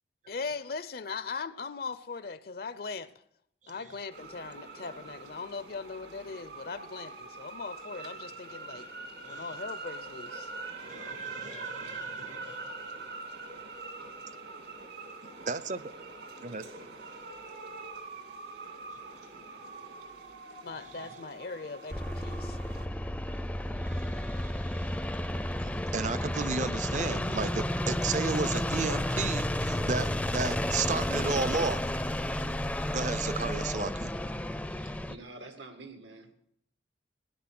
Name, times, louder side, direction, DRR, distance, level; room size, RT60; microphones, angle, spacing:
voice 1, 0.3-3.1 3.7-8.9 9.2-10.5 20.6-22.6, left 4 dB, 55° left, 0.5 m, -39 dB
sound 1, 4.1-22.8, right 3 dB, 65° right, 2.5 m, -43 dB
voice 2, 10.9-12.6 15.4-15.8 16.4-16.6 23.8-31.8 32.9-34.1, right 4 dB, 40° right, 0.6 m, -34 dB
sound 2, 21.9-35.2, left 1 dB, 5° left, 0.5 m, -32 dB
voice 3, 34.6-36.3, right 2 dB, 85° right, 2.1 m, -48 dB
16.5 x 11.0 x 6.0 m
head